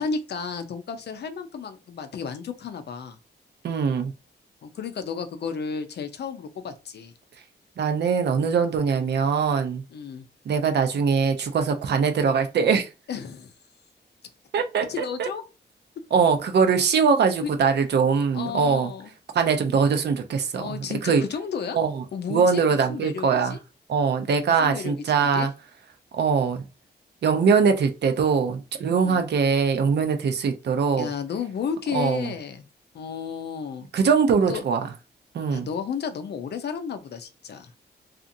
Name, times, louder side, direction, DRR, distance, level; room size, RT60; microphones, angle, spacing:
voice 1, 0.0-3.2 4.6-7.1 8.9-9.1 9.9-10.2 13.1-13.5 14.9-15.4 17.4-17.6 18.3-19.1 20.5-21.8 22.1-23.6 24.4-25.5 29.0-29.2 31.0-32.6 32.9-33.9 34.5-34.6 35.5-37.7, left 6 dB, 65° left, 0.5 m, -33 dB
voice 2, 3.6-4.1 7.8-9.8 10.5-12.9 14.5-14.9 15.2-15.3 16.1-18.9 19.3-21.2 21.7-21.9 22.3-23.6 23.9-25.5 26.2-26.6 27.2-31.1 31.9-32.3 33.9-34.9 35.3-35.7, right 6 dB, 70° right, 0.6 m, -22 dB
2.8 x 2.4 x 2.5 m
wide cardioid pair, 120°, 18 cm